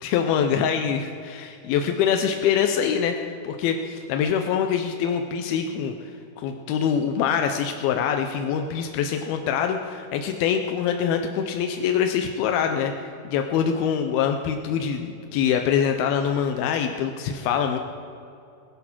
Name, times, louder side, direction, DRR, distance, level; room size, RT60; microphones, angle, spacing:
voice 1, 0.0-5.9 6.4-17.8, left 7 dB, 90° left, 5 dB, 2.7 m, -24 dB
20.5 x 8.3 x 6.1 m, 2.5 s
omnidirectional pair, 4.2 m